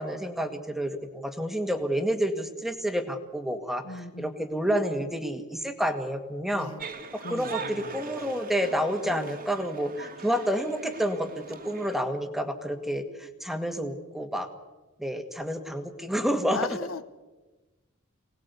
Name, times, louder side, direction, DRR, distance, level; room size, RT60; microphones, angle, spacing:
voice 1, 0.0-6.7 7.1-14.5 15.0-16.6, equal, ahead, 6 dB, 1.8 m, -29 dB
voice 2, 3.8-4.3 4.9-5.1 6.5-6.8 7.2-8.0 9.0-9.3 16.5-17.1, left 3 dB, 65° left, 11 dB, 1.0 m, -38 dB
sound 1, 6.8-12.0, right 5 dB, 40° right, 2.0 m, -41 dB
26.0 x 19.0 x 8.3 m, 1.2 s
head